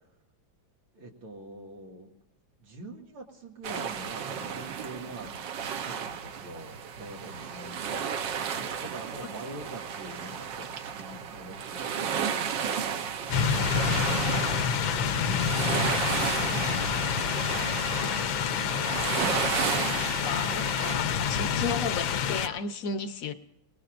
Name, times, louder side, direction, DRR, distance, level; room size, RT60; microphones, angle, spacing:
voice 1, 0.9-2.1 2.6-5.3 5.8-8.3 8.8-16.5, right 2 dB, 90° right, -1 dB, 3.1 m, -45 dB
sound 1, 3.6-21.0, right 7 dB, 65° right, 1.5 m, -33 dB
sound 2, 13.3-22.5, left 7 dB, 70° left, 1.5 m, -28 dB
voice 2, 20.0-23.3, left 5 dB, 55° left, 10 dB, 1.0 m, -34 dB
29.0 x 19.5 x 2.6 m, 0.86 s
omnidirectional pair, 2.3 m